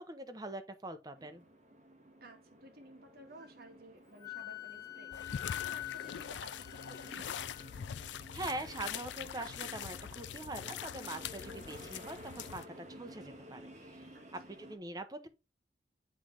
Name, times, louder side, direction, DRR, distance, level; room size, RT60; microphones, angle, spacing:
voice 1, 0.0-1.4 8.3-14.1 14.5-15.3, right 2 dB, 20° right, 0.7 m, -43 dB
sound 1, 1.2-14.8, equal, 40° right, 1.3 m, -54 dB
voice 2, 2.2-7.4 14.1-14.6, right 1 dB, 55° right, 1.7 m, -55 dB
Wind instrument woodwind instrument, 4.2-7.7, left 15 dB, 20° left, 0.5 m, -44 dB
sound 2, 5.1-12.7, left 8 dB, 85° left, 0.4 m, -43 dB
8.4 x 3.2 x 3.7 m
head